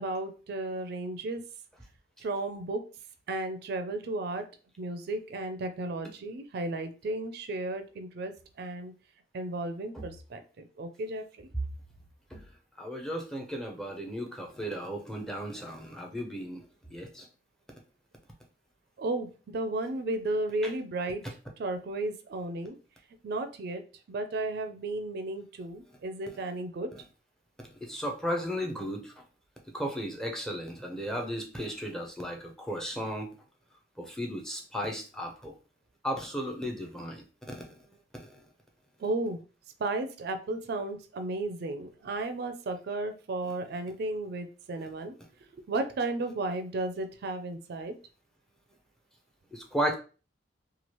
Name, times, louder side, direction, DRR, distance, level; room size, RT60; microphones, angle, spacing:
voice 1, 0.0-1.4 2.2-2.8 3.3-4.4 4.8-8.3 8.6-8.9 9.3-10.4 10.8-11.5 19.0-21.2 21.6-22.7 23.2-23.8 24.1-26.9 39.0-39.4 39.8-45.1 45.7-47.9, right 2 dB, 60° right, 8 dB, 0.4 m, -34 dB
voice 2, 12.8-16.6 16.9-17.3 20.6-20.7 26.3-26.4 26.9-27.0 27.8-29.1 29.7-33.3 34.0-35.5 36.0-37.7 38.1-38.3 49.5-50.0, equal, 5° left, 1 dB, 0.6 m, -35 dB
3.0 x 2.3 x 3.0 m, 0.35 s
head